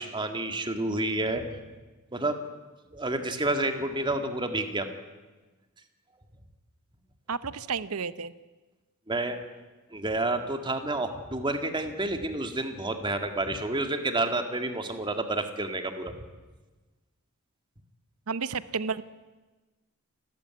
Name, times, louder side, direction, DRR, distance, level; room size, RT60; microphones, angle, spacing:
voice 1, 0.0-1.4 2.1-2.4 2.9-4.9 9.1-9.4 9.9-16.2, right 2 dB, 20° right, 6 dB, 2.0 m, -29 dB
voice 2, 7.3-8.3 18.3-19.0, right 5 dB, 75° right, 16 dB, 0.8 m, -31 dB
29.0 x 14.0 x 9.6 m, 1.2 s
head